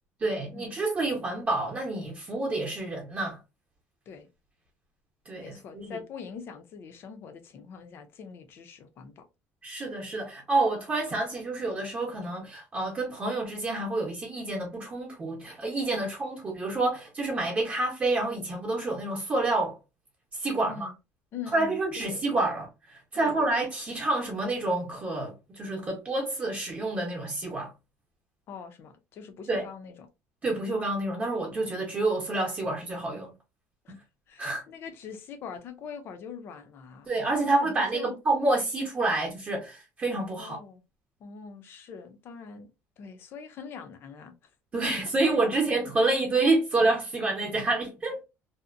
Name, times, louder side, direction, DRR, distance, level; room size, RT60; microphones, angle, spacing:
voice 1, 0.2-3.4 5.3-6.0 9.6-19.7 20.3-20.9 21.5-27.7 29.5-29.6 30.4-33.3 34.4-34.6 37.1-40.6 44.7-48.2, right 2 dB, 25° right, 0.8 m, -28 dB
voice 2, 5.4-9.2 15.9-16.1 20.6-20.9 21.3-22.2 23.1-23.4 28.5-30.1 33.8-33.9 34.3-37.1 37.4-38.2 40.4-40.8 41.2-42.7 43.0-44.3 46.0-46.1, left 6 dB, 45° left, 0.5 m, -43 dB
2.7 x 2.1 x 2.4 m
cardioid pair, 150°, 5 cm